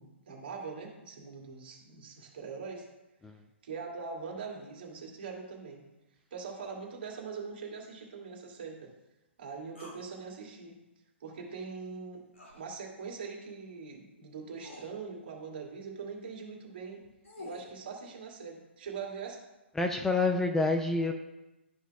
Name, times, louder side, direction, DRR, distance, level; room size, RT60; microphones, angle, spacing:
voice 1, 0.0-2.9 3.6-5.8 6.3-8.9 9.4-10.8 11.2-12.2 12.5-17.0 17.4-19.4, right 5 dB, 55° right, -2 dB, 2.3 m, -42 dB
sound 1, 9.8-10.0 12.3-12.6 13.9-14.0 14.6-14.9 16.9-17.7, left 2 dB, 85° left, 2.1 m, -47 dB
voice 2, 19.8-21.1, left 3 dB, 5° left, 4 dB, 0.4 m, -27 dB
12.5 x 5.7 x 2.3 m, 1.0 s
figure-of-eight pair, 120°, 7 cm